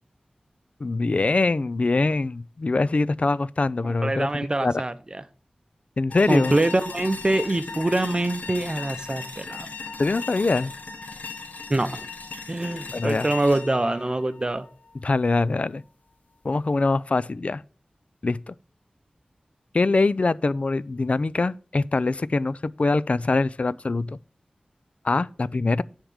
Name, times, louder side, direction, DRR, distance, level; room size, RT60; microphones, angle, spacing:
voice 1, 0.8-4.3 4.6-4.7 6.0-6.6 10.0-10.7 12.9-13.3 15.0-15.8 16.4-17.6 18.2-18.5 19.7-24.2 25.0-25.8, left 3 dB, 50° left, 0.4 m, -23 dB
voice 2, 3.8-5.2 6.3-9.7 11.7-12.0 12.5-14.7, right 2 dB, 30° right, 0.7 m, -25 dB
sound 1, 6.1-15.1, left 4 dB, 75° left, 1.2 m, -37 dB
10.5 x 3.7 x 7.1 m
wide cardioid pair, 65°, 3 cm